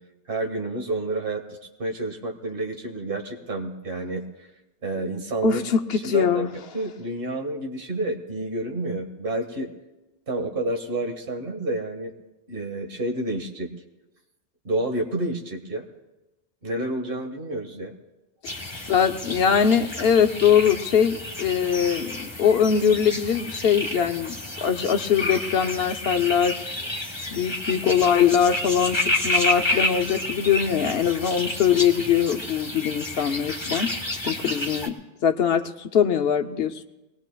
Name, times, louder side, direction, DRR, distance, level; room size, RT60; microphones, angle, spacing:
voice 1, 0.3-4.5 4.8-5.6 5.9-6.5 6.7-9.7 10.3-12.1 12.5-13.7 14.6-15.9 16.6-17.9, right 2 dB, 55° right, 2 dB, 1.7 m, -29 dB
voice 2, 5.4-6.5 18.4-24.4 24.6-26.7 27.3-33.9 34.2-34.9 35.2-36.7, left 8 dB, 65° left, 8 dB, 0.9 m, -22 dB
sound 1, 18.4-34.9, left 1 dB, 25° left, 1.5 m, -30 dB
23.5 x 19.5 x 2.3 m, 1.0 s
omnidirectional pair, 1.2 m